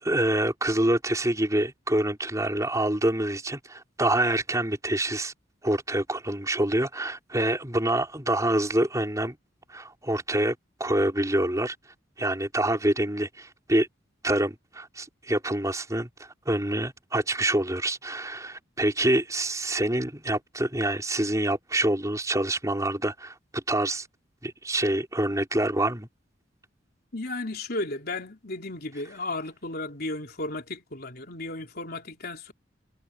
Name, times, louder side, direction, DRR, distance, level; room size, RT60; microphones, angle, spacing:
voice 1, 0.0-5.3 5.6-9.4 9.7-10.5 10.8-11.7 12.2-13.9 14.2-24.1 24.4-26.1, right 1 dB, 15° right, 4.6 m, -26 dB
voice 2, 27.1-32.5, left 2 dB, 55° left, 3.7 m, -34 dB
head